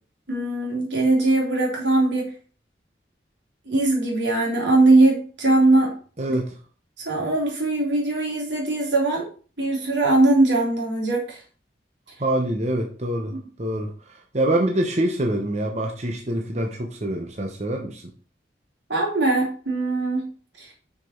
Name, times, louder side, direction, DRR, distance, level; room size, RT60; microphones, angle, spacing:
voice 1, 0.3-2.3 3.7-6.0 6.3-6.4 7.1-9.3 9.6-11.4 18.9-20.3 20.6-20.7, right 2 dB, 90° right, -2 dB, 3.5 m, -20 dB
voice 2, 6.2-6.6 12.2-13.3 13.6-18.1, right 1 dB, 40° right, 2 dB, 1.0 m, -25 dB
6.4 x 6.1 x 4.5 m, 0.40 s
head